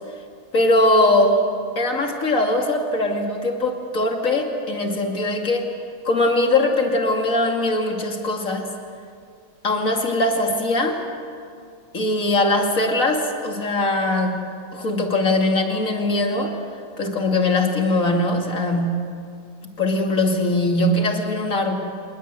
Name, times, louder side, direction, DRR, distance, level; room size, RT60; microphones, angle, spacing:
voice 1, 0.5-1.4 1.8-5.7 6.0-8.7 9.6-11.0 11.9-14.4 14.7-16.5 17.0-19.0 19.8-21.7, left 2 dB, 45° left, 2 dB, 2.8 m, -21 dB
27.0 x 20.0 x 8.1 m, 2.3 s
omnidirectional pair, 2.1 m